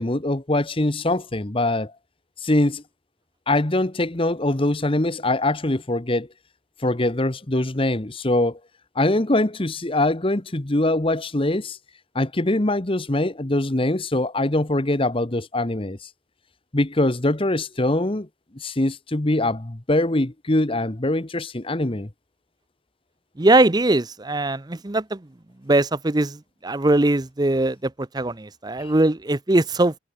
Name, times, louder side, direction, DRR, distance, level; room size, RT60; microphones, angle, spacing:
voice 1, 0.0-1.9 2.4-2.8 3.5-6.3 6.8-8.6 8.9-11.8 12.1-16.1 16.7-18.3 18.5-22.1 28.8-28.9, left 1 dB, 25° left, 1.1 m, -23 dB
voice 2, 23.4-25.2 25.7-26.4 26.6-27.8 28.1-30.0, right 2 dB, 20° right, 0.6 m, -20 dB
head